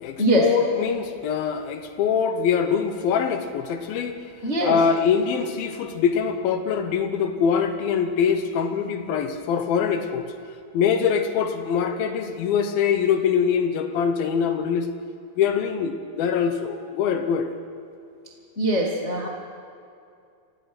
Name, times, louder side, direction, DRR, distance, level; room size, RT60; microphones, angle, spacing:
voice 1, 0.0-4.2 4.6-10.3 10.7-14.9 15.4-17.5, left 7 dB, 70° left, 7 dB, 2.3 m, -23 dB
voice 2, 4.4-4.8 18.6-19.3, right 1 dB, 55° left, -2 dB, 0.7 m, -22 dB
29.0 x 16.0 x 6.1 m, 2.4 s
omnidirectional pair, 5.3 m